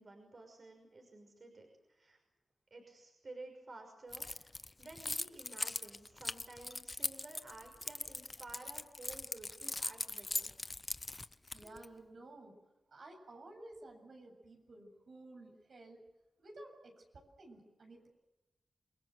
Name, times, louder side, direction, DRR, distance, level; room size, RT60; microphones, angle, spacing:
voice 1, 0.0-2.2 2.7-4.5 4.8-10.5, right 2 dB, 55° right, 3 dB, 5.9 m, -53 dB
Keys jangling, 4.1-11.9, left 2 dB, 30° left, 0.8 m, -40 dB
voice 2, 11.2-12.6 12.9-16.0 16.4-18.1, right 2 dB, 75° right, 3 dB, 7.8 m, -54 dB
28.5 x 21.0 x 7.9 m, 0.99 s
cardioid pair, 55°, 0 cm